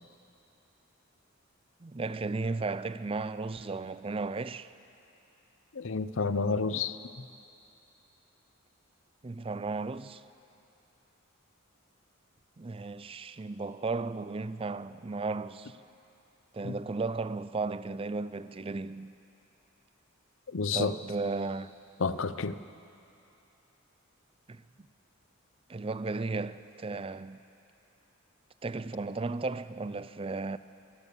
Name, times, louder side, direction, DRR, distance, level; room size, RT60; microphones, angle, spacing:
voice 1, 1.8-4.7 9.2-10.2 12.6-15.8 16.5-19.2 20.7-21.8 24.5-24.6 25.7-27.4 28.6-30.6, right 3 dB, 25° right, 0.4 m, -35 dB
voice 2, 5.7-7.0 16.6-16.7 20.5-21.0 22.0-22.6, left 4 dB, 60° left, 0.6 m, -30 dB
23.5 x 14.0 x 8.3 m
head